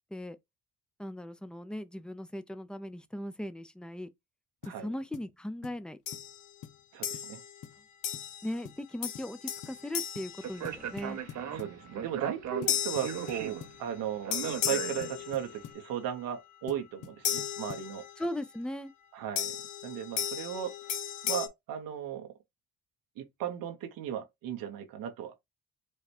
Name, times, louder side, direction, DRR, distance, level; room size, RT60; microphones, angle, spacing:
voice 1, 1.0-4.1 4.7-6.0 8.4-11.2 18.2-18.9, left 1 dB, 5° left, 0.6 m, -38 dB
sound 1, 4.6-4.8 5.1-5.3 5.6-5.8 6.1-6.3 6.6-6.8 7.1-7.3 7.6-7.8 8.1-8.3 8.6-8.9 9.1-9.3 9.6-9.8 10.2-10.4 10.6-11.8 12.6-13.8 14.6-15.8 16.7-17.9, left 9 dB, 65° left, 0.7 m, -47 dB
sound 2, 6.1-6.4 7.0-7.6 8.0-8.6 9.0-11.2 12.7-13.9 14.3-15.8 17.2-18.3 19.4-21.5, left 10 dB, 90° left, 1.0 m, -35 dB
voice 2, 6.9-7.4 11.5-18.1 19.1-19.6 19.8-20.7 21.2-22.3 23.2-25.3, right 9 dB, 85° right, 1.1 m, -36 dB
Speech, 10.4-15.5, right 8 dB, 55° right, 0.8 m, -38 dB
4.8 x 2.2 x 4.3 m
cardioid pair, 75°, 33 cm